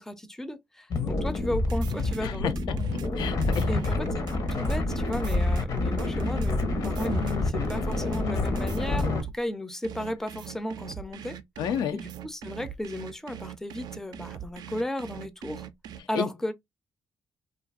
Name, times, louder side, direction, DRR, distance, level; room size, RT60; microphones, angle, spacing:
voice 1, 0.0-2.8 3.7-11.4 11.9-15.7 16.1-16.5, left 1 dB, 5° left, 0.4 m, -34 dB
sound 1, 0.9-9.2, left 2 dB, 55° left, 0.8 m, -28 dB
sound 2, 1.5-9.4 9.8-16.0, right 9 dB, 65° right, 0.3 m, -41 dB
voice 2, 2.2-3.7 11.6-12.0 16.1-16.3, left 8 dB, 75° left, 0.4 m, -31 dB
2.6 x 2.4 x 2.4 m
cardioid pair, 80°, 7 cm